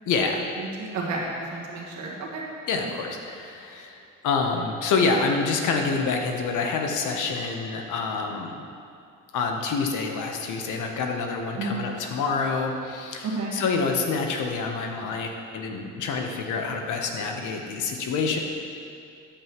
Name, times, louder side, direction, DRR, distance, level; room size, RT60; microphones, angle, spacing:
voice 1, 0.1-0.4 2.7-8.6 9.3-18.4, left 4 dB, 80° left, 3 dB, 1.0 m, -27 dB
voice 2, 0.6-2.4 11.6-11.9 13.2-13.6, right 3 dB, 70° right, -3 dB, 1.8 m, -31 dB
10.0 x 7.7 x 3.1 m, 2.5 s
cardioid pair, 90°, 30 cm